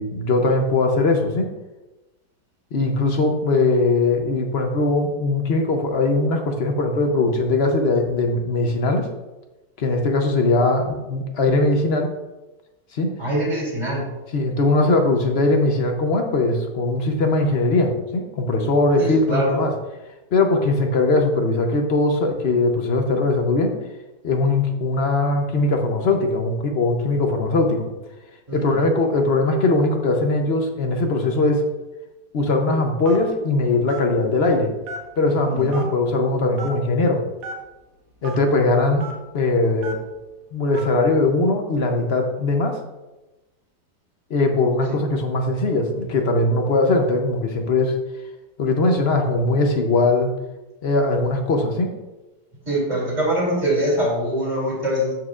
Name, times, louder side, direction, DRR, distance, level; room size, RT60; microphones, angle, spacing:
voice 1, 0.0-1.5 2.7-9.1 9.8-12.1 12.9-13.1 14.3-19.7 20.3-23.7 24.2-27.9 28.5-31.7 32.3-34.7 35.2-37.2 38.2-39.1 39.3-40.0 40.5-42.8 44.3-47.9 48.6-50.3 50.8-51.9, left 2 dB, 50° left, 3 dB, 0.8 m, -20 dB
voice 2, 13.2-14.0 19.0-19.6 28.5-28.8 35.5-35.8 44.9-45.0 52.7-55.1, right 1 dB, 20° right, -4 dB, 2.7 m, -23 dB
Telephone, 33.1-33.4 33.9-34.1 34.8-35.2 35.7-35.8 36.6-36.7 37.4-37.6 38.2-38.4 39.0-39.1 39.8-40.1 40.7-40.9, right 3 dB, 55° right, 1.5 m, -34 dB
13.0 x 4.7 x 2.4 m, 1.1 s
omnidirectional pair, 1.8 m